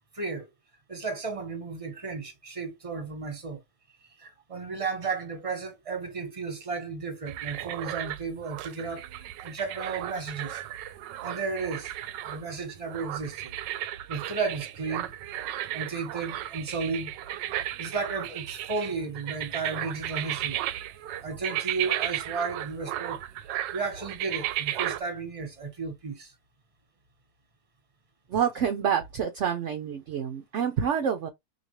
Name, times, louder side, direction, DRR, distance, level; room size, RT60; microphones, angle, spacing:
voice 1, 0.1-0.5 0.9-3.6 4.2-10.6 11.2-11.9 12.3-13.6 14.1-15.1 15.7-17.1 17.5-20.6 21.2-23.2 23.7-26.3, right 4 dB, 20° right, 1.1 m, -34 dB
sound 1, 7.3-25.0, right 13 dB, 85° right, 1.2 m, -35 dB
voice 2, 28.3-31.3, right 8 dB, 65° right, 0.7 m, -27 dB
4.3 x 2.9 x 3.0 m
omnidirectional pair, 1.9 m